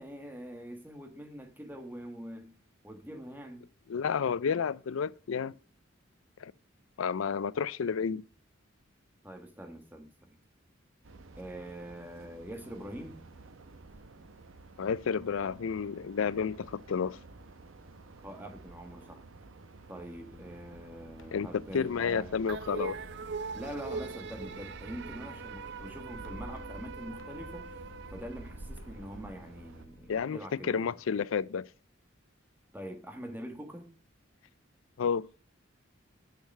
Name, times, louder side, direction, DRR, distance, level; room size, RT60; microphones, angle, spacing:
voice 1, 0.0-2.5 2.8-3.7 9.2-10.4 11.4-13.2 18.2-19.2 19.9-22.3 23.5-27.7 28.1-31.0 32.7-33.9, equal, 10° right, 1.2 m, -44 dB
voice 2, 3.9-5.5 6.4-6.5 7.0-8.2 14.8-17.2 21.3-21.5 21.7-23.0 30.1-30.4 30.7-31.7 35.0-35.2, left 6 dB, 90° left, 0.4 m, -31 dB
sound 1, 11.0-29.9, right 2 dB, 85° right, 0.8 m, -50 dB
sound 2, 20.3-30.2, left 2 dB, 70° left, 0.8 m, -54 dB
sound 3, 22.5-29.0, right 4 dB, 60° right, 0.5 m, -42 dB
6.8 x 6.5 x 6.4 m
head